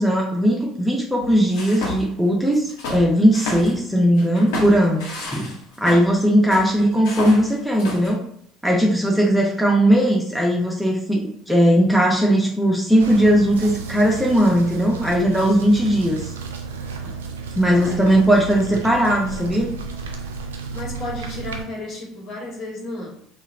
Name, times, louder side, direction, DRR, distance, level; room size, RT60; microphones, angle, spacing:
voice 1, 0.0-5.6 5.8-8.2 8.6-16.3 17.6-19.7, equal, ahead, -2 dB, 0.6 m, -18 dB
sound 1, 1.2-2.2 2.5-3.8 4.2-6.1 6.5-8.1, left 2 dB, 70° left, 0.8 m, -31 dB
sound 2, 13.0-21.6, right 4 dB, 85° right, 0.3 m, -33 dB
voice 2, 17.7-18.1 20.7-23.1, left 1 dB, 45° left, -2 dB, 1.1 m, -33 dB
2.9 x 2.0 x 2.4 m, 0.68 s
hypercardioid pair, 65°, 0 cm